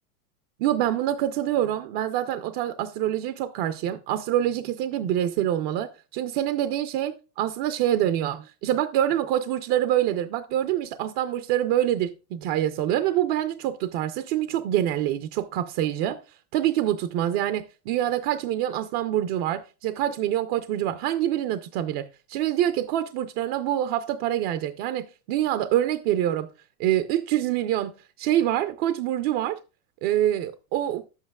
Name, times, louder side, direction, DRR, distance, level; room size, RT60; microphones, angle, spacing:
voice 1, 0.6-16.2 16.5-26.5 26.8-29.6 30.0-31.0, right 12 dB, 40° right, 0.5 m, -26 dB
10.0 x 8.2 x 2.3 m
hypercardioid pair, 125°, 46 cm